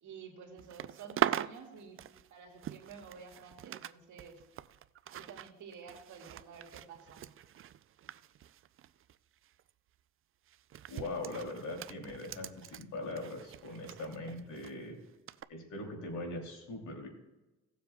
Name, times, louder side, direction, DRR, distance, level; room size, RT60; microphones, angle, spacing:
voice 1, 0.0-2.0 2.3-4.4 5.1-7.3, right 6 dB, 75° right, 2 dB, 2.1 m, -51 dB
sound 1, 0.6-3.9 4.2-9.2 9.4-9.7 10.5-14.7 15.3-15.4, right 11 dB, 45° right, 0.4 m, -41 dB
voice 2, 10.9-15.0 15.5-17.1, left 2 dB, 75° left, 1 dB, 3.0 m, -41 dB
17.5 x 7.3 x 2.3 m, 1.1 s
cardioid pair, 90°, 30 cm